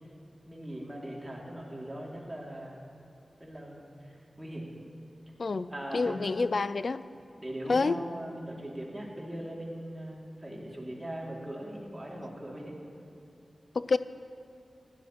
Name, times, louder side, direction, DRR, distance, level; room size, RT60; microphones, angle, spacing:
voice 1, 0.5-2.9 3.4-4.7 5.7-6.3 7.4-12.7, right 1 dB, 20° right, -3 dB, 2.7 m, -40 dB
voice 2, 5.4-7.0 7.7-8.0 13.7-14.0, left 4 dB, 70° left, 14 dB, 0.3 m, -28 dB
16.0 x 10.5 x 3.1 m, 2.7 s
cardioid pair, 50°, 0 cm